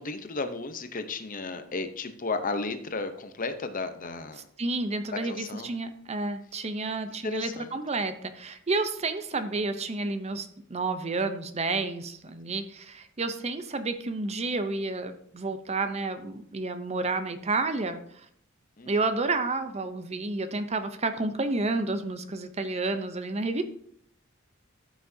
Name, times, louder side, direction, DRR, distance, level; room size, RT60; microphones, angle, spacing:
voice 1, 0.0-4.5 5.2-5.7 7.2-7.7 18.8-18.9, left 3 dB, 40° left, 8 dB, 0.8 m, -34 dB
voice 2, 4.6-18.3 18.9-23.6, right 3 dB, 30° right, 9 dB, 0.7 m, -30 dB
14.0 x 6.2 x 2.8 m, 0.65 s
head